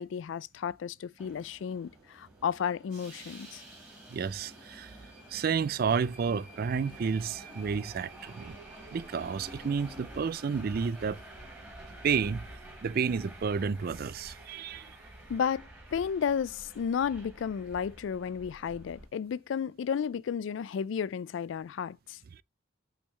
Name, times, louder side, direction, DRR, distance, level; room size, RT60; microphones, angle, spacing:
voice 1, 0.0-3.6 15.3-22.2, left 7 dB, 70° left, 0.3 m, -33 dB
Subway metro underground, 1.2-19.1, right 1 dB, 5° right, 4.6 m, -49 dB
voice 2, 4.1-4.9 5.3-8.5 8.9-11.2 12.0-12.4 12.8-15.0, right 6 dB, 50° right, 0.4 m, -31 dB
6.4 x 5.9 x 3.2 m
head